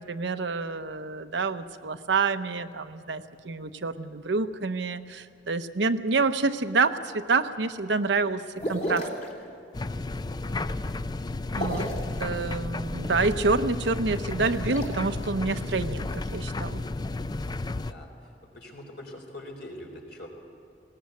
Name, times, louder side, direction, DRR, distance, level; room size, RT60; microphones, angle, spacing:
voice 1, 0.0-8.4 8.7-9.1 11.5-11.9 12.2-16.8, right 4 dB, 75° right, 9 dB, 0.8 m, -27 dB
sound 1, 8.6-9.3 11.5-12.1 14.2-14.9, equal, 40° left, 2.9 m, -32 dB
sound 2, 9.7-17.9, left 2 dB, 25° left, 0.4 m, -32 dB
voice 2, 10.5-10.9 17.8-20.3, left 1 dB, 65° left, 1 dB, 4.1 m, -44 dB
20.5 x 18.5 x 8.3 m, 2.3 s
head